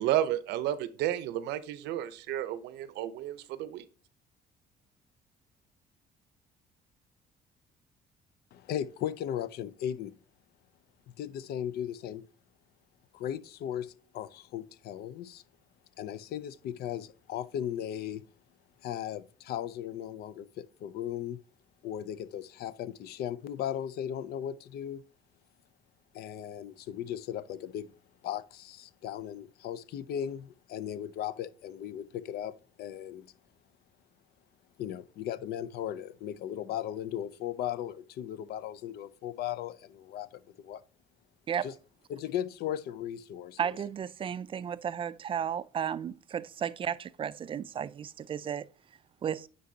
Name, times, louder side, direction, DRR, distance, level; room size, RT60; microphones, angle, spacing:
voice 1, 0.0-3.9, right 12 dB, 85° right, 0.6 m, -32 dB
voice 2, 8.5-10.1 11.2-12.3 13.1-15.4 16.0-18.2 18.8-21.4 21.8-25.0 26.1-27.9 28.2-33.3 34.8-40.8 41.6-41.7 42.1-43.6, left 10 dB, 70° left, 0.5 m, -37 dB
voice 3, 43.6-48.7 49.2-49.5, right 8 dB, 30° right, 0.4 m, -34 dB
9.4 x 4.0 x 2.7 m
cardioid pair, 110°, 17 cm